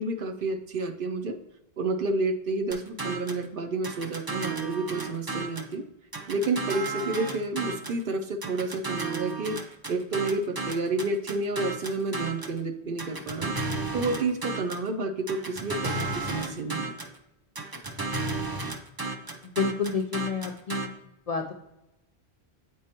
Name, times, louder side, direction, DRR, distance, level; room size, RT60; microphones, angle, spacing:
voice 1, 0.0-1.4 1.8-5.8 6.3-13.6 13.9-16.9, right 3 dB, 60° right, 6 dB, 0.7 m, -30 dB
sound 1, 2.7-3.5 3.8-5.7 6.1-8.0 8.4-12.6 13.0-14.9 15.3-17.2 17.6-20.9, right 3 dB, 30° right, 0.4 m, -33 dB
voice 2, 19.4-20.9 21.3-21.5, left 5 dB, 55° left, 3 dB, 0.4 m, -29 dB
8.6 x 4.6 x 2.9 m, 0.95 s
omnidirectional pair, 1.1 m